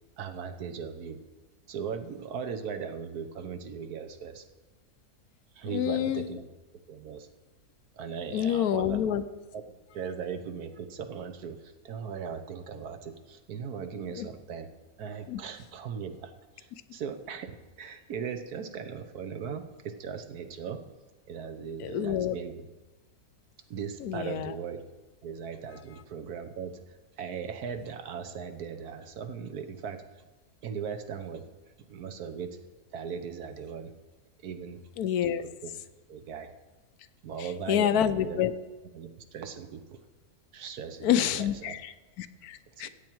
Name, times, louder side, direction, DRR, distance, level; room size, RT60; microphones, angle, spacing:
voice 1, 0.2-1.2 1.7-4.4 5.5-6.4 6.9-7.3 8.0-9.0 9.5-9.6 9.9-14.7 15.0-20.8 21.3-22.7 23.7-24.8 25.2-26.8 27.2-30.0 30.6-31.5 31.9-32.6 32.9-33.9 34.4-34.8 35.6-35.7 36.1-36.5 37.2-38.4 38.9-40.0 40.5-41.7 42.8-42.9, right 6 dB, 85° right, 8 dB, 1.5 m, -38 dB
voice 2, 5.7-6.4 8.3-9.2 14.1-14.3 15.3-15.4 21.8-22.4 24.0-24.5 35.0-35.4 37.4-38.5 41.0-42.9, left 10 dB, 90° left, 13 dB, 1.2 m, -28 dB
14.5 x 8.8 x 4.6 m, 1.2 s
omnidirectional pair, 1.6 m